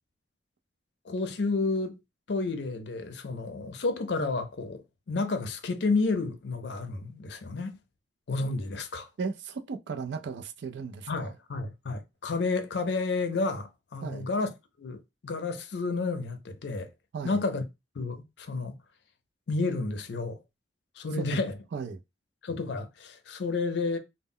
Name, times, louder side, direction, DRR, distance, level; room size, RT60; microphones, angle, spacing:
voice 1, 1.0-2.0 2.3-7.8 8.3-9.1 11.1-14.5 14.8-16.9 17.2-17.6 18.0-18.8 19.5-20.4 21.0-21.6 22.4-24.0, left 3 dB, 65° left, 0.5 m, -31 dB
voice 2, 9.2-11.3 14.0-14.3 17.1-17.4 21.2-21.3 21.7-22.0, right 5 dB, 70° right, 0.4 m, -36 dB
2.1 x 2.0 x 3.6 m
head